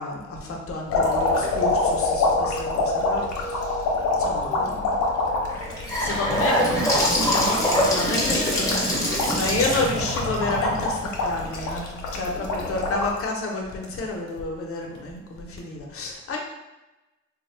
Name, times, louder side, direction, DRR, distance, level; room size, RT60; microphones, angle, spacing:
voice 1, 0.0-3.9 4.2-5.0 6.0-6.5 7.2-8.8 9.3-16.4, left 2 dB, 50° left, 0 dB, 0.8 m, -30 dB
sound 1, 0.9-13.2 13.7-14.4 15.4-15.6, left 3 dB, 85° left, 0.7 m, -26 dB
sound 2, 1.3-5.0 6.3-9.9, right 2 dB, 50° right, 0.8 m, -40 dB
Gurgling / Sink (filling or washing) / Bathtub (filling or washing), 5.5-11.6, equal, 10° left, 1.0 m, -24 dB
voice 2, 6.4-10.3 12.3-12.8, right 1 dB, 10° right, -2 dB, 0.5 m, -38 dB
3.5 x 2.2 x 3.1 m, 1.0 s
cardioid pair, 90°, 30 cm